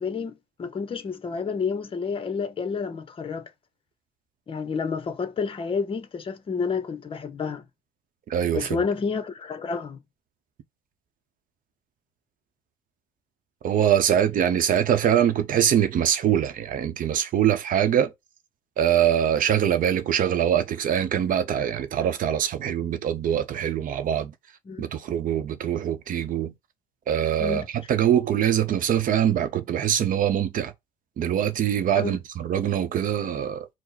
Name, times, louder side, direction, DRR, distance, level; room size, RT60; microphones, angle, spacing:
voice 1, 0.0-3.5 4.5-7.6 8.5-10.0 24.7-24.8 27.4-27.7 31.9-32.2, left 5 dB, 30° left, 0.8 m, -30 dB
voice 2, 8.3-8.8 13.6-18.1 18.8-24.3 24.8-26.5 27.1-30.7 31.2-33.7, right 9 dB, 55° right, 0.7 m, -23 dB
4.8 x 2.1 x 4.0 m
cardioid pair, 110°, 17 cm